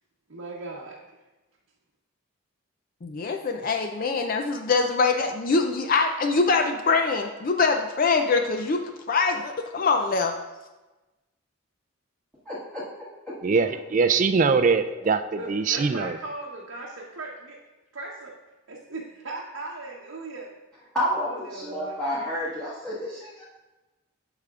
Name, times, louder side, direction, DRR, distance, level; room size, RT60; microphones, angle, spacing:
voice 1, 0.3-1.0 15.3-17.6 17.9-18.4 18.7-20.5 21.2-22.0, right 2 dB, 60° right, -3 dB, 0.8 m, -38 dB
voice 2, 3.0-10.4, left 4 dB, 40° left, 5 dB, 0.4 m, -24 dB
voice 3, 12.4-13.4 14.0-14.1 20.9-23.4, equal, 5° left, -11 dB, 1.3 m, -30 dB
voice 4, 13.4-16.2, right 5 dB, 35° right, 10 dB, 0.3 m, -22 dB
14.0 x 4.9 x 2.4 m, 1.1 s
head